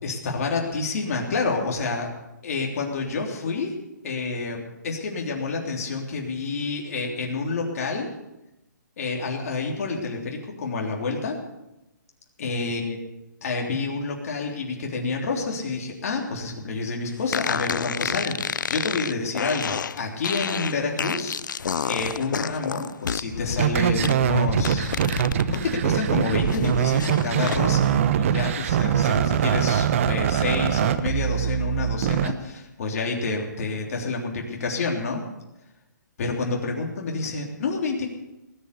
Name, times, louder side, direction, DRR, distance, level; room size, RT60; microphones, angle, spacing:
voice 1, 0.0-2.1 2.4-3.7 4.0-8.1 9.0-11.4 12.4-13.0 13.4-21.6 21.9-25.0 25.5-35.2 36.2-38.1, left 3 dB, 50° left, 0 dB, 3.4 m, -28 dB
sound 1, 17.3-25.6 26.0-27.6, left 6 dB, 75° left, 0.5 m, -30 dB
sound 2, 23.5-32.3, right 9 dB, 40° right, 0.9 m, -23 dB
19.5 x 8.0 x 8.3 m, 0.94 s
hypercardioid pair, 150°, 10 cm